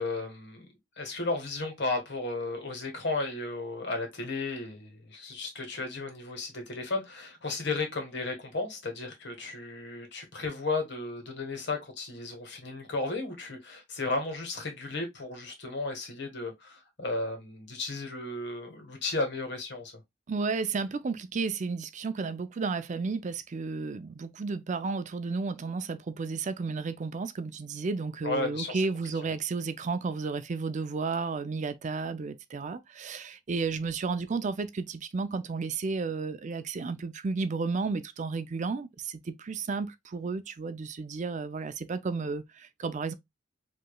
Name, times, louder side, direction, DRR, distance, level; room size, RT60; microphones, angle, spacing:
voice 1, 0.0-19.9 28.2-28.8, left 3 dB, 65° left, 1.6 m, -34 dB
voice 2, 20.3-43.1, right 4 dB, 40° right, 0.4 m, -32 dB
5.1 x 3.0 x 2.3 m
head